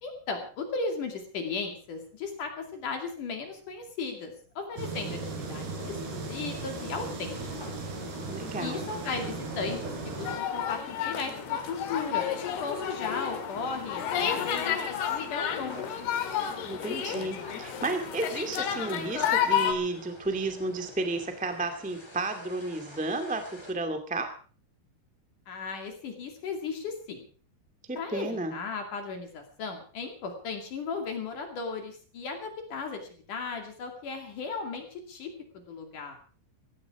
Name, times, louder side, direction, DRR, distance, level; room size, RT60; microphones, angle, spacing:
voice 1, 0.0-7.7 8.6-12.3 12.6-16.1 25.5-27.2 28.0-33.0 33.3-36.2, left 4 dB, 50° left, 4 dB, 3.7 m, -36 dB
sound 1, 4.8-10.4, right 3 dB, 70° right, 5.6 m, -37 dB
sound 2, 7.3-23.7, left 2 dB, 10° left, 1.2 m, -47 dB
voice 2, 8.3-8.8 16.6-24.3 27.9-28.5, right 2 dB, 5° right, 6 dB, 0.7 m, -32 dB
sound 3, 10.2-19.7, left 9 dB, 70° left, 3.7 m, -31 dB
17.0 x 15.5 x 4.9 m, 0.41 s
omnidirectional pair, 4.9 m